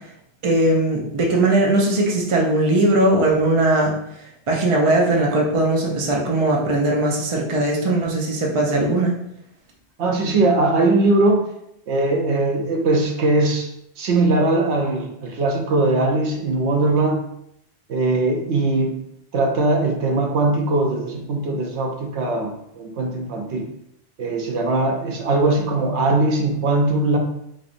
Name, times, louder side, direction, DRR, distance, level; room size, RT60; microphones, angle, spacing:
voice 1, 0.4-3.9 4.5-9.2, right 1 dB, 35° right, -1 dB, 0.6 m, -19 dB
voice 2, 10.0-11.5 11.9-13.7 14.0-17.2 17.9-19.0 19.3-23.7 24.2-27.2, right 2 dB, 80° right, 2 dB, 0.9 m, -20 dB
3.9 x 3.3 x 2.5 m, 0.76 s
omnidirectional pair, 1.2 m